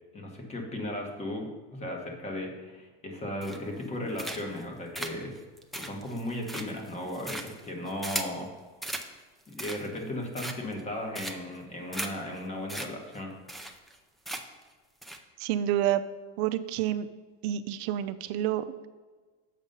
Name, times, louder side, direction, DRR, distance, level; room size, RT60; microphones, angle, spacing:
voice 1, 0.1-5.3 5.7-8.5 9.5-13.3, left 1 dB, 20° left, 2 dB, 1.4 m, -36 dB
sound 1, 3.4-3.8 4.2-4.6 4.9-8.4 8.8-9.1 9.4-10.0 10.3-10.8 11.1-11.6 11.9-12.1 12.4-12.5 12.7-12.9 13.1-13.2 13.5-14.0 14.2-14.6 15.0-15.2, right 1 dB, ahead, 0.4 m, -37 dB
voice 2, 15.4-16.0 16.4-17.1 17.4-18.9, right 11 dB, 75° right, 12 dB, 0.5 m, -28 dB
7.2 x 5.3 x 5.4 m, 1.4 s
supercardioid pair, 135°, 33 cm